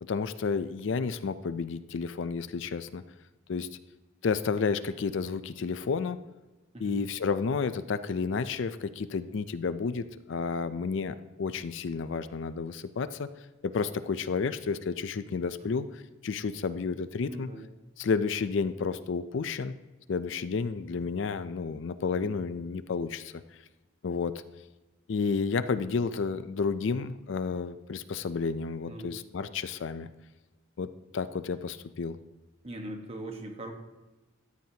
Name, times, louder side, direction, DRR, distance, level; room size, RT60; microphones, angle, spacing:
voice 1, 0.0-3.0 3.5-3.7 4.2-6.2 6.8-13.3 13.6-15.9 16.2-17.5 18.0-19.7 20.1-23.4 24.0-24.4 25.1-30.1 30.8-32.2, left 5 dB, 65° left, 12 dB, 0.4 m, -31 dB
voice 2, 17.3-17.7 28.9-29.2 32.6-33.7, right 1 dB, 30° right, 3 dB, 1.2 m, -40 dB
13.5 x 9.4 x 2.8 m, 1.1 s
head